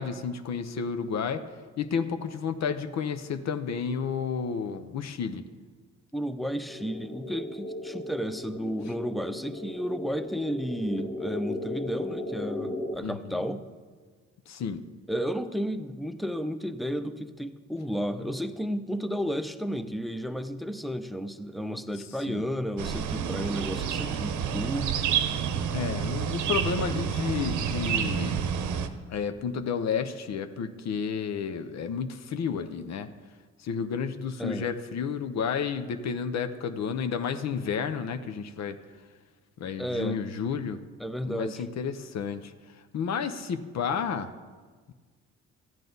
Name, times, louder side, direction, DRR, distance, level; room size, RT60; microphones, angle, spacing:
voice 1, 0.0-1.4 1.8-5.4 13.0-13.5 14.5-14.8 22.3-22.5 25.7-28.4 29.1-33.1 33.6-38.8 39.6-40.8 41.2-44.3, left 6 dB, 60° left, 9 dB, 0.8 m, -31 dB
voice 2, 6.1-13.6 15.1-25.1 34.4-34.7 39.8-40.2 41.0-41.6, equal, ahead, 10 dB, 0.6 m, -32 dB
sound 1, 6.7-13.0, left 1 dB, 35° left, 1.5 m, -36 dB
sound 2, 22.8-28.9, right 8 dB, 75° right, 0.8 m, -29 dB
13.5 x 9.0 x 4.0 m, 1.5 s
cardioid pair, 90°, 30 cm